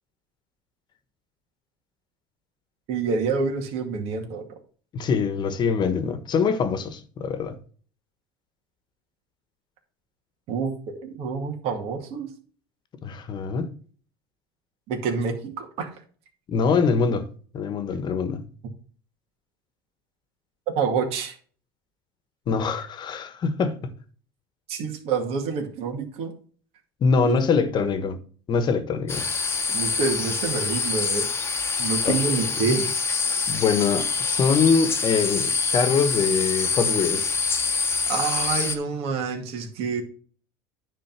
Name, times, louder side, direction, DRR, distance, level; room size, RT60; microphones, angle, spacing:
voice 1, 2.9-4.5 10.5-12.3 14.9-15.9 20.8-21.4 24.7-26.3 27.2-27.4 27.8-27.9 29.7-31.3 31.8-32.9 37.9-40.0, right 5 dB, 60° right, 2.1 m, -27 dB
voice 2, 4.9-7.6 13.0-13.7 16.5-17.2 17.5-18.4 22.5-23.9 27.0-28.2 28.5-29.3 32.0-32.2 32.7-32.8 33.5-37.3, left 5 dB, 40° left, 1.3 m, -23 dB
sound 1, 29.1-38.8, left 5 dB, 20° left, 1.1 m, -25 dB
10.0 x 3.8 x 5.9 m
supercardioid pair, 115°, 12 cm